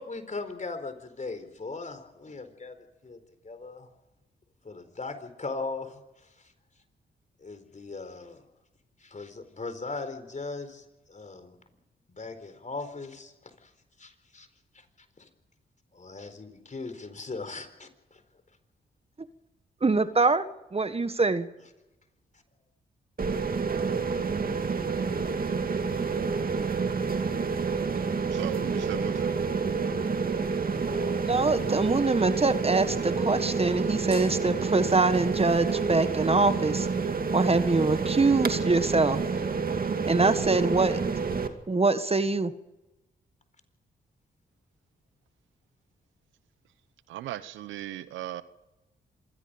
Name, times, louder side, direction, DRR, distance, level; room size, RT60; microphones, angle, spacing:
voice 1, 0.0-2.8 3.0-3.2 3.4-3.9 4.6-6.0 7.4-8.4 9.0-11.6 12.1-13.5 14.0-14.5 14.7-14.8 15.2-15.3 15.9-18.2 24.1-24.2, left 3 dB, 40° left, 9 dB, 4.2 m, -39 dB
voice 2, 19.8-21.5 31.2-36.9 37.3-39.2 40.1-41.0 41.7-42.5, right 3 dB, 30° right, 12 dB, 1.5 m, -24 dB
sound 1, 23.2-41.5, right 5 dB, 50° right, 2.4 m, -29 dB
voice 3, 28.2-29.4 47.1-48.4, right 13 dB, 85° right, 15 dB, 0.9 m, -37 dB
26.5 x 22.0 x 5.3 m, 1.0 s
supercardioid pair, 40°, 19 cm